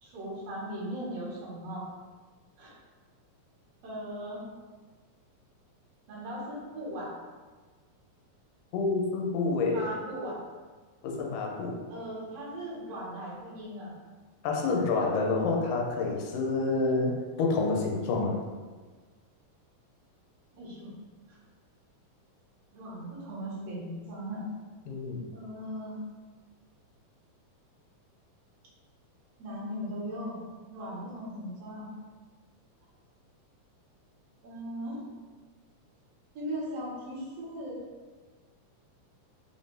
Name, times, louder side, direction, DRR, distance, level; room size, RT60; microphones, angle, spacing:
voice 1, 0.0-1.8 2.6-2.7 3.8-4.4 6.1-7.1 9.7-10.4 11.9-13.9 20.6-20.9 22.7-24.4 25.3-26.0 29.4-30.4 30.7-31.9 34.4-35.0 36.4-37.8, equal, 60° right, -6 dB, 2.0 m, -38 dB
voice 2, 8.7-9.9 11.0-11.8 14.4-18.4 24.9-25.2, left 3 dB, 80° left, 1 dB, 2.1 m, -28 dB
5.1 x 2.6 x 3.7 m, 1.4 s
omnidirectional pair, 3.8 m